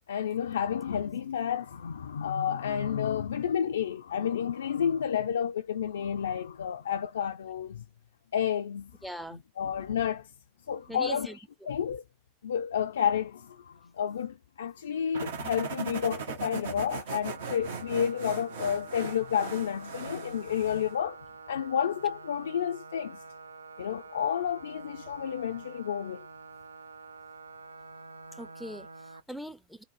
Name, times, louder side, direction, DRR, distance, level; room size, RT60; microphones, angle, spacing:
voice 1, 0.1-7.8 8.3-8.9 9.6-10.3 10.7-11.3 11.7-12.0 12.4-23.2 23.8-26.2, left 8 dB, 65° left, 0.3 m, -30 dB
voice 2, 9.0-9.4 10.9-11.4 28.3-29.8, equal, ahead, 0.5 m, -41 dB
sound 1, 15.1-20.9, right 5 dB, 60° right, 0.8 m, -39 dB
sound 2, 17.3-29.2, right 4 dB, 75° right, 0.4 m, -47 dB
3.7 x 2.1 x 3.1 m
figure-of-eight pair, 90°, 0 cm